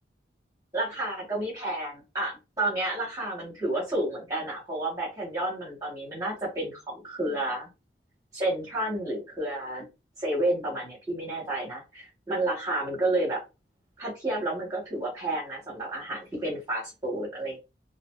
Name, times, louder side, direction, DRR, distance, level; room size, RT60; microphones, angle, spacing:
voice 1, 0.7-2.3 2.6-7.7 8.3-9.8 10.2-13.4 14.0-17.6, right 1 dB, 20° right, -6 dB, 1.1 m, -30 dB
2.5 x 2.5 x 2.2 m, 0.26 s
head